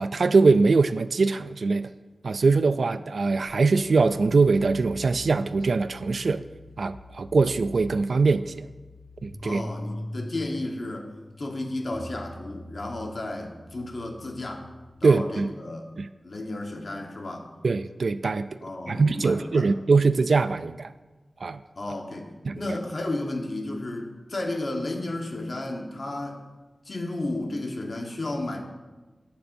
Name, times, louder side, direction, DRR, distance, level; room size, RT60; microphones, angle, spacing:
voice 1, 0.0-1.9 2.2-6.4 6.8-8.7 9.2-9.6 15.0-15.5 16.0-16.1 17.6-18.5 18.9-20.9 21.4-21.6 22.5-22.6, right 4 dB, 75° right, 12 dB, 0.3 m, -22 dB
sound 1, 3.5-14.9, left 1 dB, 15° left, 2.8 m, -44 dB
voice 2, 9.4-11.1 11.4-14.7 15.0-15.9 16.2-17.5 18.6-19.7 21.8-22.3 22.6-26.4 26.8-28.6, left 2 dB, 55° left, 1 dB, 1.3 m, -33 dB
14.5 x 6.8 x 2.6 m, 1.2 s
wide cardioid pair, 100°, 0 cm